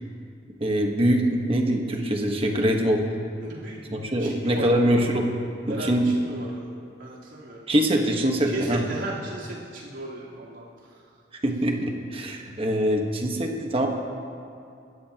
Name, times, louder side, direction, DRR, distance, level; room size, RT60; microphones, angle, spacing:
voice 1, 0.6-3.0 3.9-5.3 5.7-6.1 7.7-8.8 11.4-13.9, equal, 30° right, 2 dB, 1.3 m, -23 dB
voice 2, 3.4-4.8 5.7-6.7 7.0-7.7 8.5-10.7, right 1 dB, 85° right, -7 dB, 3.6 m, -36 dB
26.0 x 13.0 x 2.9 m, 2.5 s
head